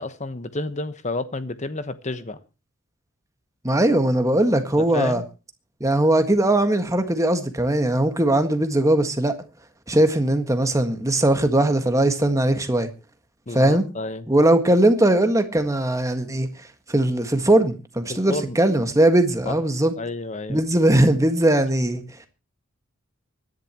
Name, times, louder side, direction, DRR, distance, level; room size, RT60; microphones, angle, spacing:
voice 1, 0.0-2.4 4.8-5.2 13.5-14.3 18.1-18.6 19.4-19.5 20.0-20.6, left 2 dB, 35° left, 1.1 m, -30 dB
voice 2, 3.6-5.2 5.8-9.3 9.9-12.9 13.5-13.8 14.3-16.5 16.9-19.9 20.5-22.0, right 1 dB, 15° right, 1.6 m, -19 dB
24.5 x 11.0 x 3.0 m
head